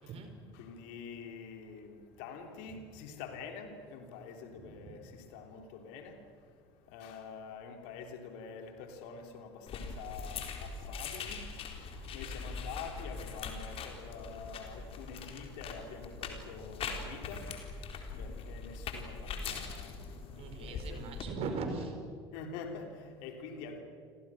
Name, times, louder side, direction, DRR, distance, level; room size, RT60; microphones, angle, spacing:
voice 1, 0.0-0.3 2.7-2.8 4.5-5.0 20.4-22.0, right 4 dB, 50° right, 6 dB, 4.8 m, -40 dB
voice 2, 0.6-5.0 5.3-6.1 6.9-11.4 12.1-17.5 18.2-19.9 20.4-21.0 22.3-23.8, left 5 dB, 60° left, 5 dB, 3.3 m, -46 dB
sound 1, 9.7-21.2, left 5 dB, 45° left, 4.0 m, -42 dB
29.5 x 25.5 x 6.4 m, 2.2 s
figure-of-eight pair, 60°, 13 cm